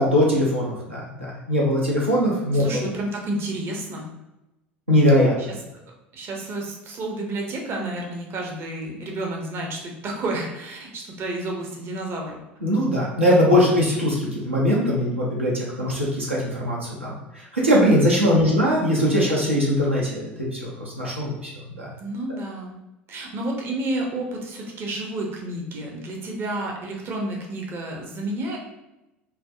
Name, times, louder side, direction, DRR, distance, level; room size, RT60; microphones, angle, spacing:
voice 1, 0.0-2.8 4.9-5.3 12.6-17.2 17.5-21.5 21.8-21.9, equal, 90° right, -5 dB, 0.6 m, -21 dB
voice 2, 2.5-4.1 5.4-5.6 6.1-12.4 18.4-18.7 22.0-22.8 23.1-28.6, right 1 dB, 40° right, 0 dB, 0.6 m, -30 dB
3.3 x 2.0 x 2.3 m, 0.96 s
figure-of-eight pair, 70°, 6 cm